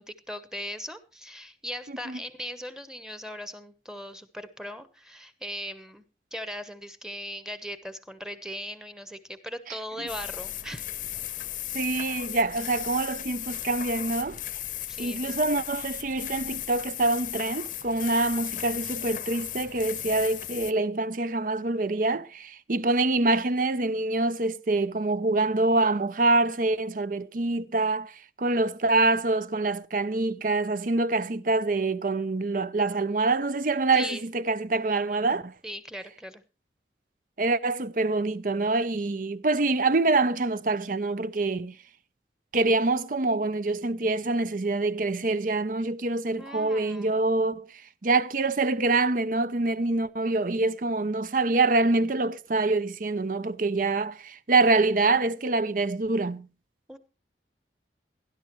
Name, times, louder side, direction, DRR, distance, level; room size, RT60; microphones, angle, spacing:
voice 1, 0.0-6.0 6.3-10.8 14.9-15.6 28.9-29.5 33.9-34.2 35.6-36.4 46.4-47.1 56.9-57.0, equal, 5° right, 1.1 m, -39 dB
sound 1, 10.1-20.7, left 12 dB, 45° left, 0.7 m, -36 dB
voice 2, 11.7-14.4 15.0-35.5 37.4-41.8 42.5-47.7 48.0-56.5, right 3 dB, 50° right, 0.6 m, -25 dB
18.5 x 11.5 x 3.1 m
head